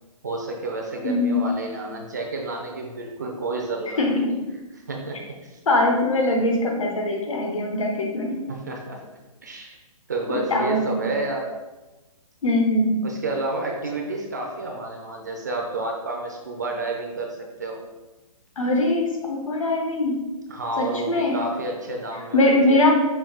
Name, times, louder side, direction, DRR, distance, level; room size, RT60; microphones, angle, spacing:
voice 1, 0.2-4.0 4.9-5.6 8.5-9.0 9.4-9.8 10.1-11.5 13.0-17.8 20.5-22.8, right 2 dB, 30° right, 1 dB, 0.4 m, -30 dB
voice 2, 1.0-1.4 4.0-4.4 5.7-8.4 10.3-11.1 12.4-13.0 18.6-20.2 20.8-21.4 22.3-23.0, left 1 dB, 60° left, 2 dB, 1.0 m, -22 dB
5.3 x 2.6 x 3.5 m, 1.1 s
hypercardioid pair, 175°, 19 cm